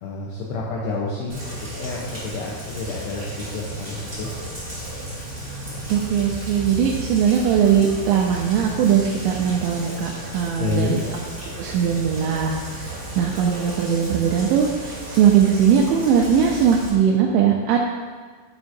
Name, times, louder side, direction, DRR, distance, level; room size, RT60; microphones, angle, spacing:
voice 1, 0.0-4.3 10.6-11.0, left 3 dB, 80° left, -3 dB, 2.4 m, -29 dB
Rain, 1.3-16.9, right 1 dB, 55° right, 0.8 m, -34 dB
voice 2, 5.9-10.9 11.6-17.8, right 8 dB, 90° right, 1 dB, 2.6 m, -20 dB
9.6 x 7.7 x 2.7 m, 1.5 s
omnidirectional pair, 6.0 m